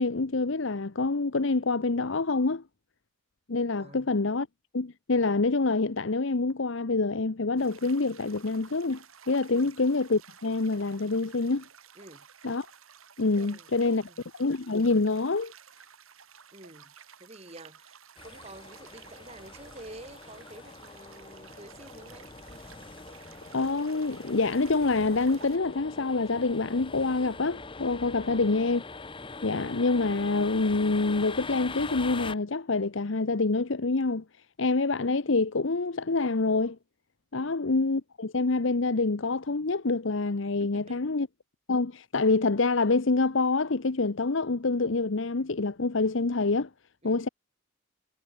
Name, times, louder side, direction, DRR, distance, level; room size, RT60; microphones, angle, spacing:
voice 1, 0.0-2.6 3.5-4.5 4.7-11.7 12.4-12.7 13.2-14.0 14.4-15.5 23.5-28.8 29.4-34.2 34.6-36.8 37.3-41.3 41.7-46.7 47.0-47.3, left 3 dB, 60° left, 0.9 m, -26 dB
voice 2, 3.8-4.1 9.5-9.7 11.9-12.3 13.4-14.2 16.5-16.9 17.2-22.3 28.1-28.5 37.3-37.5 40.6-41.1 47.0-47.2, right 1 dB, 30° right, 6.7 m, -49 dB
sound 1, 7.6-25.6, right 7 dB, 80° right, 4.0 m, -53 dB
sound 2, 18.2-32.3, left 3 dB, 25° left, 1.0 m, -43 dB
head